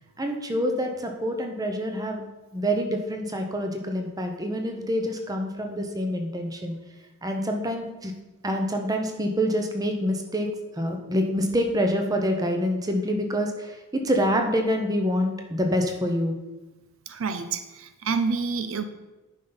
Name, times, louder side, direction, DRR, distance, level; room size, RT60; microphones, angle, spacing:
voice 1, 0.2-2.2 2.5-6.8 7.2-8.1 8.4-10.5 10.8-16.3, equal, 15° right, 3 dB, 0.8 m, -26 dB
voice 2, 17.1-18.8, right 5 dB, 70° right, 10 dB, 0.5 m, -28 dB
10.0 x 5.6 x 4.0 m, 1.1 s
head